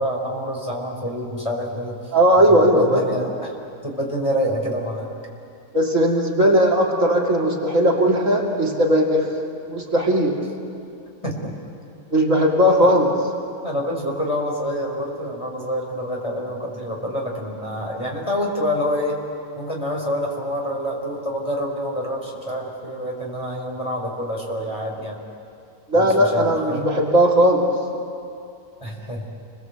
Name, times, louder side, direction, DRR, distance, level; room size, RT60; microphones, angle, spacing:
voice 1, 0.0-2.1 2.5-3.5 3.8-5.1 11.2-11.5 12.8-13.0 13.6-19.2 19.6-25.2 25.9-26.9 28.8-29.3, equal, 20° left, -1 dB, 4.7 m, -27 dB
voice 2, 2.1-3.0 5.7-9.3 9.7-10.4 12.1-13.1 25.9-27.7, equal, 55° right, -2 dB, 2.9 m, -17 dB
30.0 x 22.5 x 8.0 m, 2.5 s
omnidirectional pair, 1.6 m